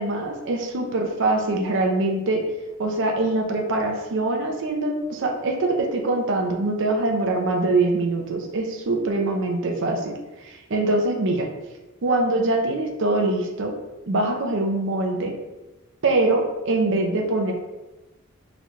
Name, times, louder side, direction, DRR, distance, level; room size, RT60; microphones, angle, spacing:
voice 1, 0.0-2.4 2.8-10.1 10.4-11.5 12.0-13.7 14.1-15.3 16.0-17.5, right 2 dB, 60° right, 2 dB, 0.5 m, -23 dB
4.0 x 2.3 x 3.0 m, 1.1 s
head